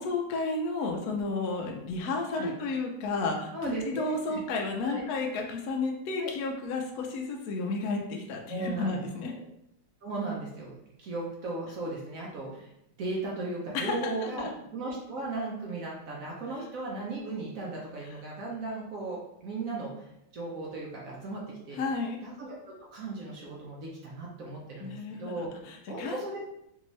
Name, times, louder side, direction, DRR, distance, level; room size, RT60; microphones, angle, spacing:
voice 1, 0.0-9.3 13.7-14.5 21.7-22.2 24.8-26.3, left 3 dB, 80° left, 1 dB, 0.8 m, -32 dB
voice 2, 3.5-4.4 4.9-5.0 6.2-6.3 8.5-9.4 10.0-12.7 13.0-21.8 22.2-22.6 22.9-25.5 25.9-26.4, right 2 dB, 65° right, -3 dB, 0.8 m, -36 dB
3.5 x 2.7 x 3.0 m, 0.80 s
omnidirectional pair, 2.2 m